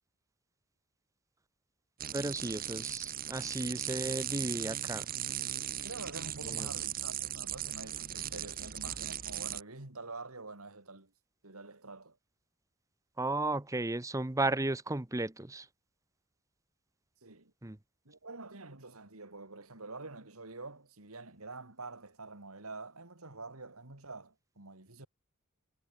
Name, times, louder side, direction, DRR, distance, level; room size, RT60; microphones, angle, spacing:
sound 1, 2.0-9.6, right 11 dB, 45° right, 1.7 m, -38 dB
voice 1, 2.1-5.1 6.4-6.8 13.2-15.7 17.6-17.8, right 2 dB, 15° right, 0.8 m, -34 dB
voice 2, 5.8-11.1 11.4-12.2 17.2-17.5 18.1-25.1, right 3 dB, 85° right, 3.5 m, -47 dB
head